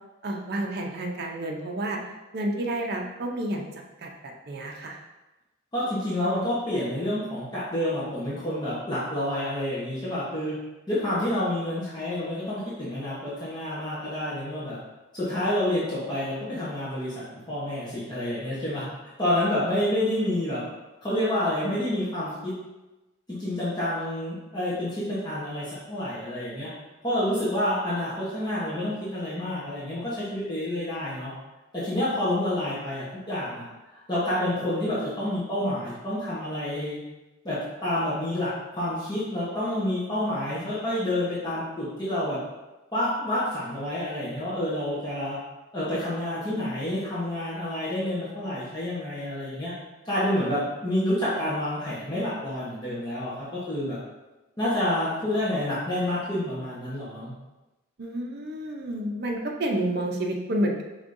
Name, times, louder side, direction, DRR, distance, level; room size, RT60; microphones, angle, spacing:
voice 1, 0.2-2.0 2.3-3.6 4.0-5.0 58.0-60.8, right 1 dB, 55° right, 1 dB, 0.6 m, -30 dB
voice 2, 5.7-10.6 10.9-14.8 15.1-18.9 19.2-20.6 21.0-22.5 23.3-26.7 27.0-31.3 31.7-33.7 33.9-37.0 37.4-42.4 42.9-45.4 45.7-49.7 50.0-54.0 54.6-57.3, left 1 dB, 20° left, -10 dB, 1.0 m, -28 dB
5.0 x 3.5 x 2.6 m, 1.1 s
head